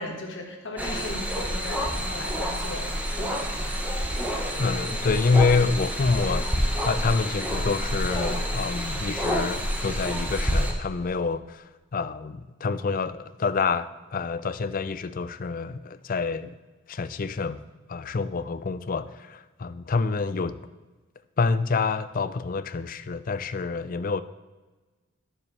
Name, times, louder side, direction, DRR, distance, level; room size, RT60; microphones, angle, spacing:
voice 1, 0.0-3.6, left 1 dB, 60° left, 1 dB, 1.7 m, -37 dB
sound 1, 0.8-10.7, equal, 10° right, 0.9 m, -28 dB
voice 2, 4.6-6.5 6.8-16.6 16.9-17.6 17.9-20.6 21.4-24.2, left 4 dB, 40° left, 12 dB, 0.4 m, -27 dB
12.0 x 7.2 x 3.3 m, 1.2 s
head